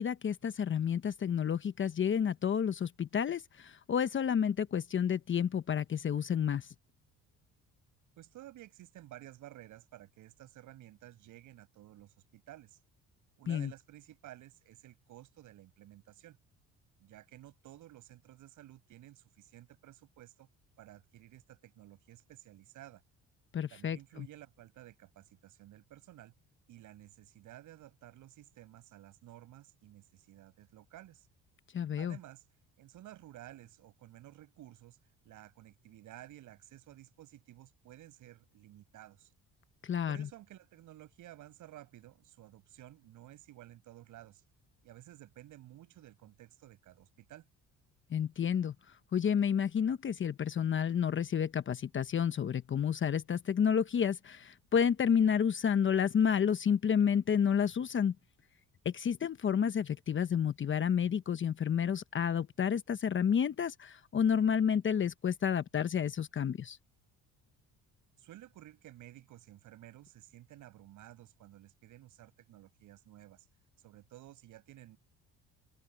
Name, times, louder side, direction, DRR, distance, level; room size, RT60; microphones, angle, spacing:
voice 1, 0.0-6.7 13.5-13.7 23.5-24.3 31.7-32.2 39.8-40.2 48.1-48.7 49.1-58.1 58.8-66.8, left 8 dB, 40° left, 1.0 m, -30 dB
voice 2, 8.2-12.8 13.4-16.4 17.0-20.5 20.8-23.0 23.7-26.3 26.7-31.3 32.0-32.4 32.8-35.0 35.2-39.3 40.1-44.4 44.8-47.5 68.2-73.4 73.8-75.0, right 14 dB, 75° right, 7.9 m, -54 dB
open air
cardioid pair, 95°, 31 cm